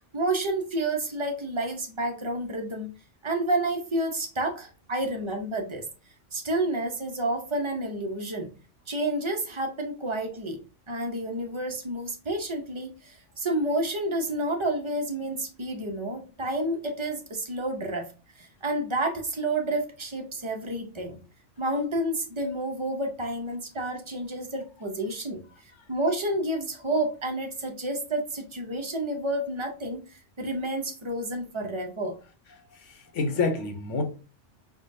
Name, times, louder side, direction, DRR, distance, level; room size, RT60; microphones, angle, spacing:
voice 1, 0.0-2.9 3.2-5.9 6.3-8.5 8.9-21.2 21.6-32.2, right 1 dB, 40° right, 0.4 m, -30 dB
voice 2, 32.7-34.0, left 3 dB, 85° left, 1.1 m, -28 dB
4.8 x 2.2 x 2.6 m
omnidirectional pair, 1.2 m